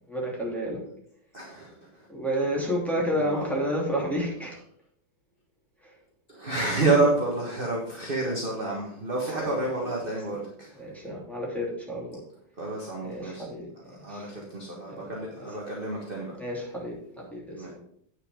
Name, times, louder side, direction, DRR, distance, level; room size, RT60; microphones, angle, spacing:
voice 1, 0.1-0.8 2.1-4.5 9.4-10.1 10.7-12.2 13.0-14.3 14.9-15.6 16.4-16.9 17.3-17.7, equal, ahead, -5 dB, 2.8 m, -31 dB
voice 2, 1.3-2.1 3.1-4.0 6.3-10.8 12.6-13.4 13.8-16.3 17.5-17.7, right 2 dB, 30° right, -2 dB, 1.6 m, -29 dB
9.2 x 6.4 x 5.1 m, 0.68 s
omnidirectional pair, 2.2 m